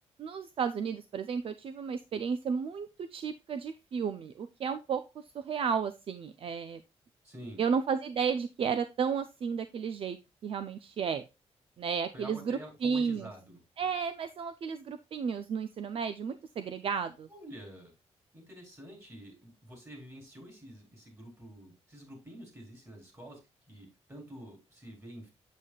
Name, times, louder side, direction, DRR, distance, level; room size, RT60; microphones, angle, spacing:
voice 1, 0.2-5.0 5.3-6.8 7.6-10.2 10.4-11.2 11.8-13.3 13.8-17.3, right 6 dB, 55° right, 11 dB, 0.5 m, -33 dB
voice 2, 7.2-7.6 12.1-13.6 17.3-17.9 18.3-23.4 23.7-25.3, right 1 dB, 25° right, 1 dB, 3.9 m, -48 dB
8.1 x 7.4 x 2.3 m, 0.25 s
wide cardioid pair, 135°, 11 cm